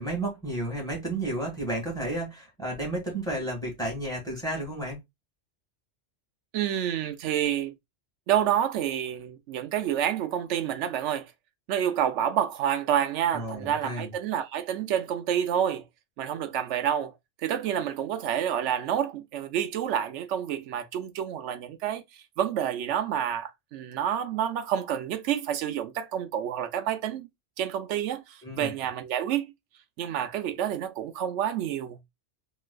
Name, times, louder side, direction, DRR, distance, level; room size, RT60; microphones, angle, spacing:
voice 1, 0.0-5.0 13.3-14.1 28.4-28.7, right 1 dB, 5° left, 1.5 m, -32 dB
voice 2, 6.5-7.7 8.3-11.3 11.7-15.8 16.2-17.1 17.4-22.0 22.4-27.3 27.6-29.4 30.0-32.0, right 10 dB, 80° right, 0.9 m, -28 dB
3.2 x 3.0 x 2.3 m
omnidirectional pair, 1.2 m